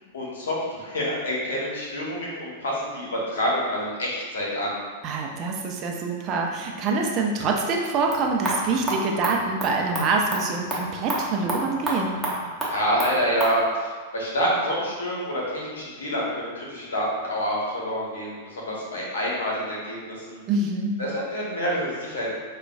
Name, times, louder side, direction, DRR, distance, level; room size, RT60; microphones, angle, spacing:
voice 1, 0.1-4.8 12.7-20.4 21.0-22.3, equal, 70° left, -4 dB, 0.9 m, -27 dB
voice 2, 5.0-12.2 20.5-21.0, right 3 dB, 35° right, 1 dB, 0.5 m, -25 dB
sound 1, 7.9-13.6, right 1 dB, 5° right, 0.9 m, -30 dB
5.1 x 2.2 x 2.2 m, 1.5 s
figure-of-eight pair, 95°, 0 cm